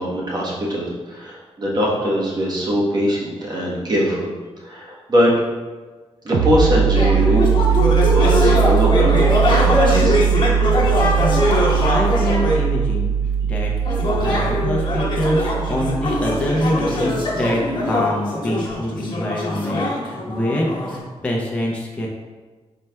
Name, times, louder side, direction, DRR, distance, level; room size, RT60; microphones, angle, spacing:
voice 1, 0.0-4.3 4.6-5.3 6.2-7.5 8.1-10.2, equal, 40° right, -5 dB, 1.1 m, -21 dB
sound 1, 6.3-17.7, right 7 dB, 70° right, 0.5 m, -20 dB
sound 2, 6.9-12.6 13.8-21.0, left 1 dB, 45° left, 1.1 m, -22 dB
voice 2, 11.9-13.7 14.2-22.1, equal, 10° left, -3 dB, 0.6 m, -25 dB
4.8 x 4.3 x 2.2 m, 1.3 s
wide cardioid pair, 130°, 11 cm